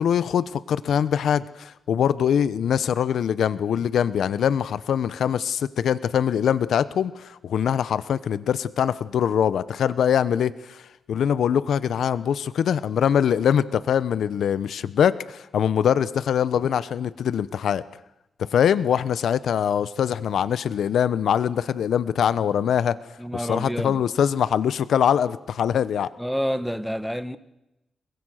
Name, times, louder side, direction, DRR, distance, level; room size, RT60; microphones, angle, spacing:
voice 1, 0.0-10.8 11.1-17.8 18.5-23.0 23.5-26.1, left 8 dB, 80° left, 1.0 m, -23 dB
voice 2, 23.2-24.0 26.2-27.4, equal, ahead, 1.7 m, -28 dB
29.5 x 23.5 x 6.6 m
cardioid pair, 85°, 0 cm